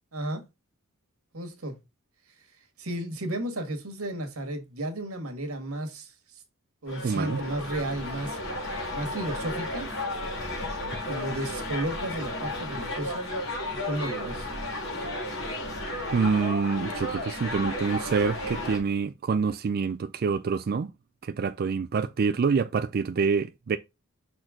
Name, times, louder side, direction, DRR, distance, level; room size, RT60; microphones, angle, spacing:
voice 1, 0.1-0.4 1.3-1.8 2.8-6.4 6.8-8.4 8.9-9.9 11.0-14.5, right 1 dB, 90° right, 1.8 m, -33 dB
sound 1, 6.9-18.8, left 1 dB, 60° left, 3.5 m, -33 dB
voice 2, 7.0-7.4 16.1-20.9 21.2-23.8, right 5 dB, 45° right, 0.4 m, -26 dB
6.1 x 4.4 x 3.7 m
head